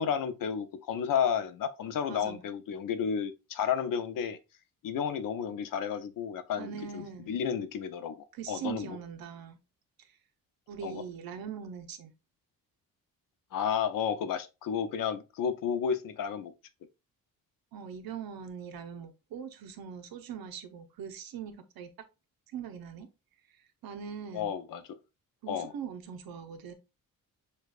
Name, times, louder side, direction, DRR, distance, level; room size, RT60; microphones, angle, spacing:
voice 1, 0.0-4.4 4.8-9.0 10.8-11.0 13.5-16.5 24.3-24.8 25.5-25.7, left 7 dB, 65° left, 0.6 m, -32 dB
voice 2, 2.1-2.4 6.6-7.3 8.3-9.6 10.7-12.1 17.7-21.9 22.5-23.1 23.8-24.5 25.4-26.7, right 7 dB, 80° right, 0.7 m, -41 dB
6.5 x 2.3 x 2.3 m
cardioid pair, 150°, 35 cm